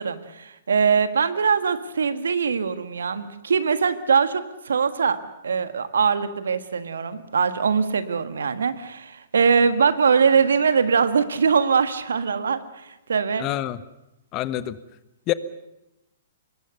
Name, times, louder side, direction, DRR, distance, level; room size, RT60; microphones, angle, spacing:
voice 1, 0.0-5.2 5.4-13.5, right 6 dB, 65° right, 11 dB, 1.6 m, -22 dB
voice 2, 13.4-13.8 14.3-14.8 15.3-15.4, left 15 dB, 30° left, 15 dB, 1.0 m, -26 dB
25.0 x 22.0 x 6.7 m, 0.93 s
figure-of-eight pair, 115°, 0 cm